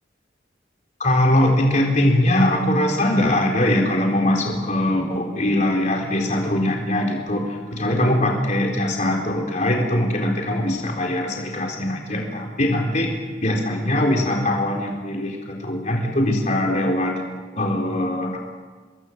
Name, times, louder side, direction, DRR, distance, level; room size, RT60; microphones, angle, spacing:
voice 1, 1.0-13.1 13.4-17.2 17.6-18.4, left 1 dB, 40° left, 0 dB, 4.0 m, -21 dB
25.5 x 22.0 x 7.3 m, 1.5 s
head